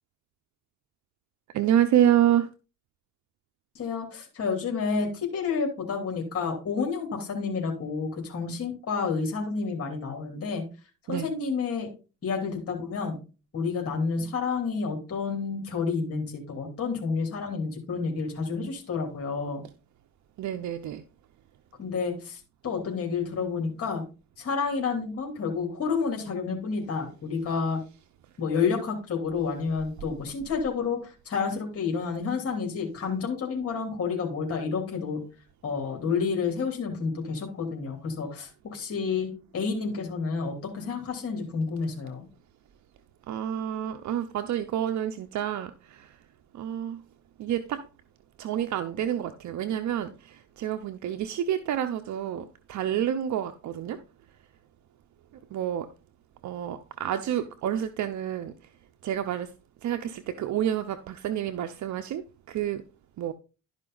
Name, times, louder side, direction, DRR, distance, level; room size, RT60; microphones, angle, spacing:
voice 1, 1.5-2.5 11.1-11.3 20.4-21.0 43.3-46.2 46.5-47.0 47.4-47.9 48.4-54.0 55.5-55.9 56.4-58.5 59.0-59.5 59.8-62.8 63.2-63.3, right 10 dB, 70° right, 0.7 m, -28 dB
voice 2, 3.7-10.6 11.1-11.9 12.2-13.2 13.5-19.6 21.8-24.0 24.4-27.8 28.4-35.2 35.6-42.2, left 5 dB, 50° left, 3.0 m, -30 dB
12.0 x 5.2 x 3.9 m
cardioid pair, 90°, 30 cm